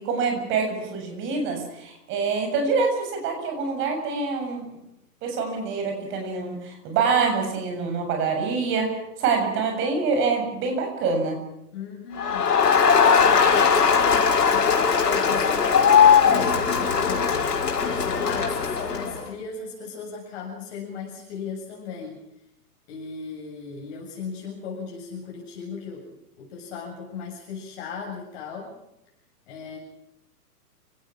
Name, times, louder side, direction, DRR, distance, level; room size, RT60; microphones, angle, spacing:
voice 1, 0.0-4.8 5.2-11.4, right 4 dB, 25° right, 4 dB, 7.4 m, -26 dB
voice 2, 11.7-12.5 13.3-17.5 18.0-22.2 22.9-28.7 29.5-29.8, left 5 dB, 40° left, -2 dB, 7.5 m, -36 dB
Crowd, 12.2-19.2, left 6 dB, 85° left, 6.3 m, -19 dB
29.5 x 18.0 x 6.2 m, 0.85 s
hypercardioid pair, 155°, 47 cm